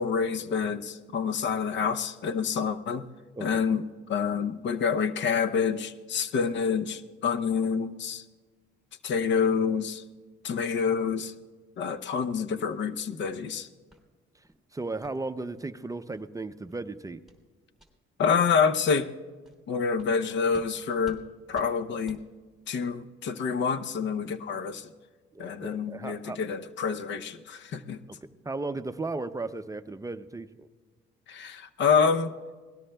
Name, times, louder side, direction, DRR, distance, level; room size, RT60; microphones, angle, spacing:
voice 1, 0.0-3.0 3.4-8.2 9.0-10.0 10.4-11.3 11.8-13.7 18.2-19.1 19.7-21.2 21.5-22.2 22.7-24.9 25.4-28.0 31.3-32.3, left 6 dB, 65° left, 11 dB, 0.7 m, -27 dB
voice 2, 3.3-3.6 14.3-14.4 14.7-17.2 25.3-26.4 28.1-28.2 28.4-30.7, right 3 dB, 15° right, 10 dB, 0.5 m, -35 dB
sound 1, 13.9-14.0 14.4-14.6 15.0-15.2 15.6-15.7 16.1-16.2 16.6-16.8 17.3-17.4 17.7-17.9 18.4-18.5 18.9-19.0 19.4-19.6 20.0-20.1 20.5-20.7 21.0-21.2 21.5-21.7 22.1-22.2, right 1 dB, ahead, 2.8 m, -51 dB
25.5 x 18.5 x 2.3 m, 1.4 s
cardioid pair, 90°, 20 cm